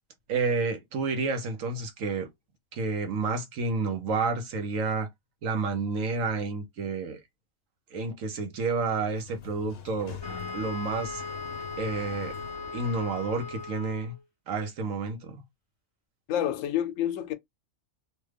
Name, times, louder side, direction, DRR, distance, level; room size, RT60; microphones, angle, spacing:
voice 1, 0.3-2.3 2.7-5.1 5.4-7.2 7.9-10.2 10.5-11.3 11.8-12.4 12.7-14.1 14.5-15.4, right 4 dB, 85° right, 1.2 m, -30 dB
Sliding door, 8.9-14.0, left 7 dB, 55° left, 0.8 m, -44 dB
Wind instrument woodwind instrument, 10.2-14.2, left 4 dB, 25° right, 0.8 m, -38 dB
voice 2, 16.3-17.3, left 11 dB, 80° left, 1.0 m, -28 dB
3.2 x 2.2 x 3.3 m
omnidirectional pair, 1.3 m